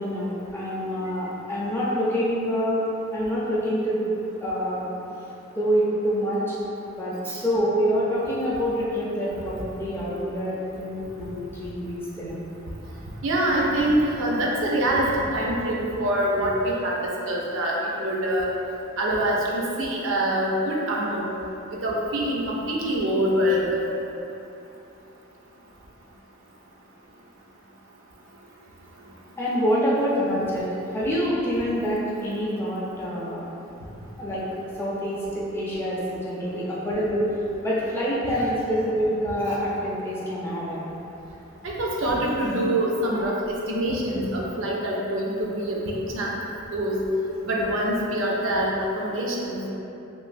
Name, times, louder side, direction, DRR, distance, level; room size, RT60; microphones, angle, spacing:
voice 1, 0.0-2.8 3.1-4.0 4.4-4.9 5.6-6.5 7.0-12.4 29.4-33.4 34.2-34.4 34.8-37.3 37.6-40.8, equal, 10° left, -8 dB, 0.4 m, -26 dB
voice 2, 13.2-18.5 19.0-21.3 21.8-23.8 39.5-39.6 41.6-46.4 46.7-47.0 47.5-49.7, right 1 dB, 65° right, -3 dB, 0.4 m, -25 dB
3.0 x 2.4 x 2.5 m, 2.9 s
head